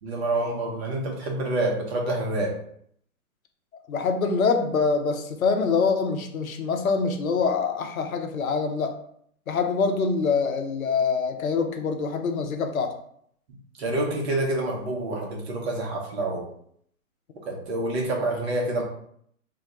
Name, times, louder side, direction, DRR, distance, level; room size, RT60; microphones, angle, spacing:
voice 1, 0.0-2.5 13.8-16.5 17.5-18.8, right 2 dB, 45° right, 0 dB, 1.0 m, -27 dB
voice 2, 3.9-9.0 9.5-12.9, left 5 dB, 75° left, 5 dB, 0.7 m, -25 dB
2.7 x 2.1 x 3.8 m, 0.67 s
hypercardioid pair, 135°, 43 cm